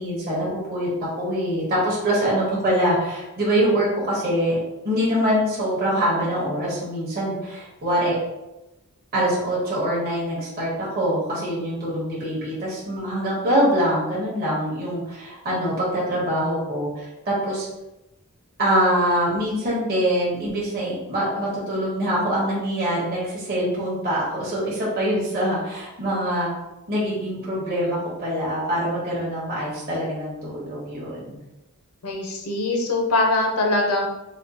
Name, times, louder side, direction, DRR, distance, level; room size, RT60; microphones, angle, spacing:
voice 1, 0.0-4.6 4.8-8.2 9.1-17.7 18.6-26.5 26.9-31.4, equal, 45° right, -7 dB, 1.1 m, -24 dB
voice 2, 32.0-34.1, left 2 dB, 75° left, 1 dB, 0.7 m, -22 dB
4.1 x 2.3 x 2.8 m, 0.96 s
head